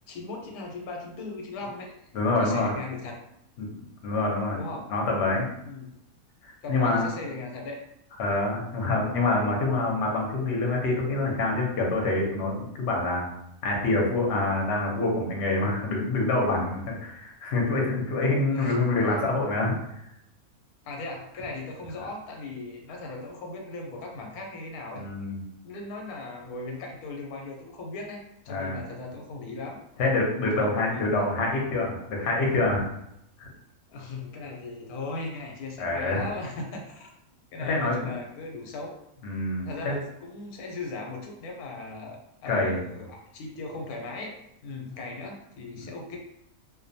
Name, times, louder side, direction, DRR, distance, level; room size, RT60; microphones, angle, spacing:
voice 1, 0.1-2.1 2.4-3.2 4.5-4.9 5.6-5.9 6.6-7.8 18.5-19.2 20.8-25.1 25.6-29.8 30.5-31.2 33.9-37.1 37.5-39.0 39.6-44.3 44.6-46.2, left 3 dB, 85° left, 1 dB, 1.1 m, -38 dB
voice 2, 2.1-2.7 3.6-3.7 4.0-4.6 4.9-5.5 6.4-7.1 8.2-13.3 13.6-19.7 24.9-25.4 28.5-28.8 30.0-32.9 33.4-33.5 35.8-36.2 37.7-38.1 39.2-39.9 42.5-42.8, left 2 dB, 60° left, -1 dB, 0.8 m, -26 dB
2.5 x 2.1 x 2.6 m, 0.80 s
omnidirectional pair, 1.5 m